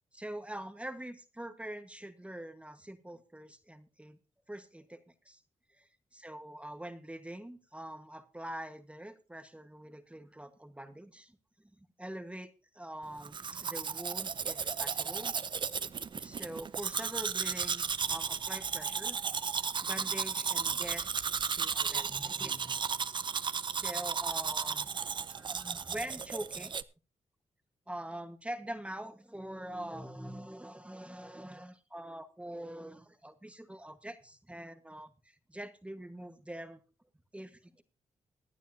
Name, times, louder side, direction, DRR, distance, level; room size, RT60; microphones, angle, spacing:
voice 1, 0.1-4.2 4.5-5.4 5.8-11.4 12.0-12.5 12.7-15.4 16.2-19.2 19.5-21.1 21.4-22.8 23.7-26.7 27.9-36.8 37.3-37.8, right 1 dB, 10° right, 8 dB, 1.3 m, -44 dB
Domestic sounds home sounds, 13.2-26.8, right 6 dB, 40° right, 0.5 m, -34 dB
25.0 x 9.2 x 2.7 m, 0.33 s
cardioid pair, 75°, 12 cm